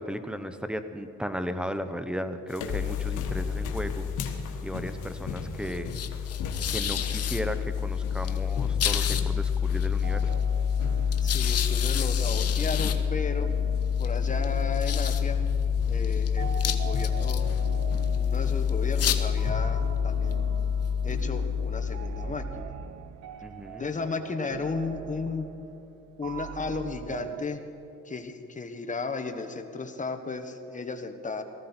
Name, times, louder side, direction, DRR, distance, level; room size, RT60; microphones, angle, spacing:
voice 1, 0.0-4.1 4.6-6.0 6.7-10.4 23.4-23.8, equal, 5° right, 9 dB, 0.9 m, -35 dB
sound 1, 2.5-19.5, left 4 dB, 90° left, 1.5 m, -41 dB
sound 2, 2.7-22.6, left 7 dB, 55° left, 1.0 m, -27 dB
sound 3, 10.0-27.4, right 8 dB, 70° right, 0.7 m, -42 dB
voice 2, 11.2-13.5 14.0-15.4 15.9-17.5 18.1-20.4 21.0-22.7 23.8-25.5 26.2-27.6 28.0-31.4, left 4 dB, 25° left, 6 dB, 1.3 m, -34 dB
18.5 x 14.5 x 4.4 m, 2.8 s
cardioid pair, 90°, 30 cm